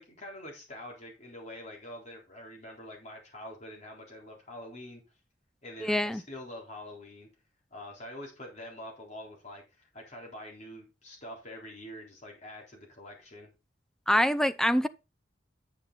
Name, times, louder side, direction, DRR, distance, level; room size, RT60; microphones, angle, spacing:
voice 1, 0.0-5.0 5.6-7.3 7.7-13.5, left 1 dB, 40° left, 3.8 m, -45 dB
voice 2, 5.8-6.2 14.1-14.9, equal, 5° left, 0.5 m, -25 dB
9.5 x 6.5 x 4.1 m
head